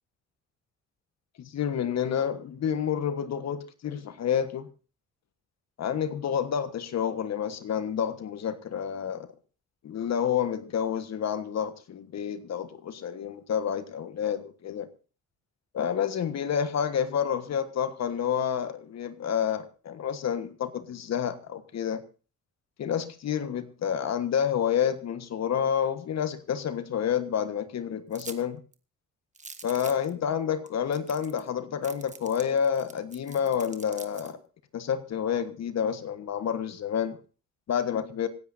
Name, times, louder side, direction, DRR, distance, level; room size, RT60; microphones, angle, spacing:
voice 1, 1.4-4.7 5.8-9.3 9.8-14.9 15.7-22.0 22.8-28.6 29.6-34.4 34.7-37.2 37.7-38.3, left 8 dB, 60° left, 11 dB, 1.5 m, -29 dB
sound 1, 28.1-28.4 28.7-28.8 29.3-30.1 30.7-30.8 30.9-31.5 31.8-34.3, right 4 dB, 25° right, 1.5 m, -45 dB
26.0 x 9.9 x 2.7 m, 0.36 s
cardioid pair, 90°, 30 cm